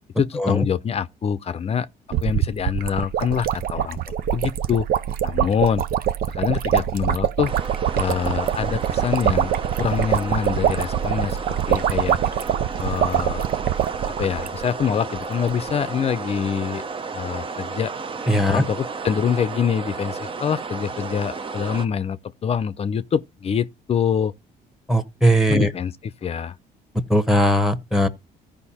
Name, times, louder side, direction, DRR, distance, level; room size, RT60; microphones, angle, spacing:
voice 1, 0.2-1.9 2.2-4.0 4.3-4.9 5.2-5.9 6.3-7.5 7.9-9.5 9.8-11.4 11.7-12.2 12.8-13.5 14.2-16.8 17.1-17.9 18.5-24.3 25.5-26.5, left 7 dB, 35° left, 0.6 m, -25 dB
sound 1, 2.1-14.9 15.2-15.3 15.5-15.7, right 10 dB, 60° right, 0.6 m, -24 dB
sound 2, 7.4-21.9, right 4 dB, 30° right, 0.8 m, -33 dB
voice 2, 18.3-18.6 24.9-25.7 27.1-28.1, equal, ahead, 1.1 m, -19 dB
14.5 x 5.3 x 4.2 m
cardioid pair, 110°, 17 cm